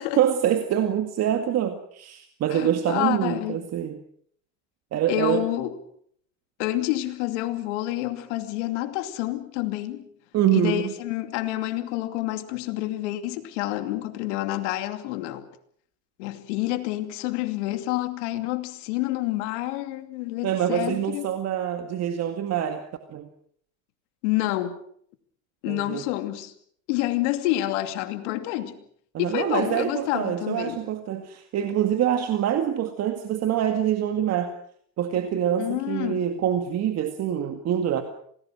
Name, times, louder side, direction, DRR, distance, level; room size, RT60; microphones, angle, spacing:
voice 1, 0.2-4.0 4.9-5.5 10.3-10.9 20.4-22.8 23.1-23.3 25.7-26.0 29.1-34.5 35.0-38.0, right 10 dB, 45° right, 2.1 m, -25 dB
voice 2, 2.5-3.6 5.1-5.7 6.6-10.1 10.5-15.5 16.2-21.3 24.2-24.8 25.6-26.5 26.9-28.8 29.2-30.8 35.6-36.2, left 15 dB, 85° left, 2.6 m, -28 dB
27.5 x 19.0 x 6.2 m
supercardioid pair, 115°, 34 cm